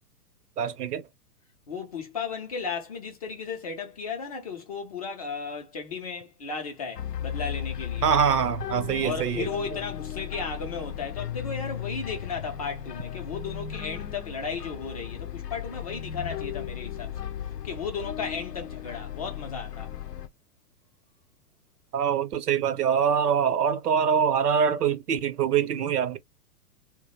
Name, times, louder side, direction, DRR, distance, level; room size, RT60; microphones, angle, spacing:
voice 1, 0.6-1.0 8.0-9.5 21.9-26.2, right 7 dB, 80° right, 0.6 m, -24 dB
voice 2, 1.7-8.1 9.0-17.3 17.6-19.9, left 5 dB, 25° left, 0.4 m, -35 dB
sound 1, 7.0-20.3, left 10 dB, 90° left, 0.5 m, -36 dB
2.2 x 2.0 x 2.8 m
figure-of-eight pair, 105°, 46 cm